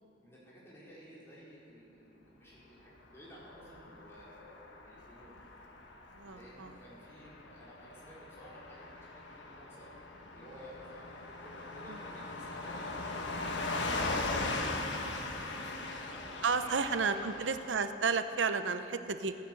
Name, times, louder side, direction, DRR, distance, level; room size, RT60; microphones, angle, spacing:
voice 1, 0.2-5.4 6.2-9.9 10.3-17.3, equal, 15° left, -8 dB, 4.6 m, -53 dB
Car passing by / Truck, 3.3-17.7, left 2 dB, 75° left, 1.4 m, -39 dB
voice 2, 6.1-6.8 11.9-12.0 16.4-19.4, right 5 dB, 90° right, 9 dB, 0.7 m, -32 dB
15.5 x 10.5 x 7.8 m, 2.9 s
head